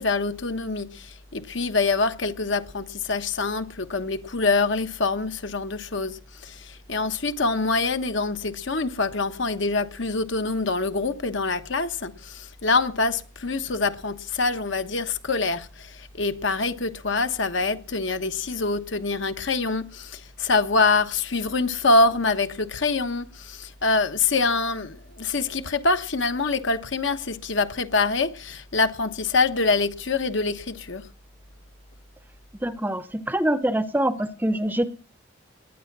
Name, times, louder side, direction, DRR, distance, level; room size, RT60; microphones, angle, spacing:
voice 1, 0.0-31.0, left 3 dB, 65° left, 1.2 m, -25 dB
voice 2, 32.6-34.9, right 1 dB, 10° right, 0.7 m, -25 dB
19.5 x 9.6 x 6.1 m
head